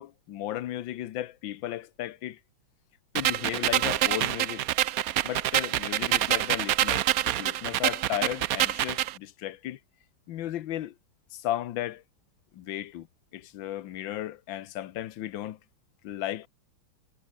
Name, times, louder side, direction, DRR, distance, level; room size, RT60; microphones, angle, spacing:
voice 1, 0.0-2.4 3.1-4.7 5.2-9.8 10.3-10.9 11.3-12.0 12.5-13.1 13.3-15.6 16.0-16.5, left 13 dB, 75° left, 1.6 m, -35 dB
sound 1, 3.1-9.1, right 13 dB, 85° right, 0.7 m, -26 dB
omnidirectional pair, 2.2 m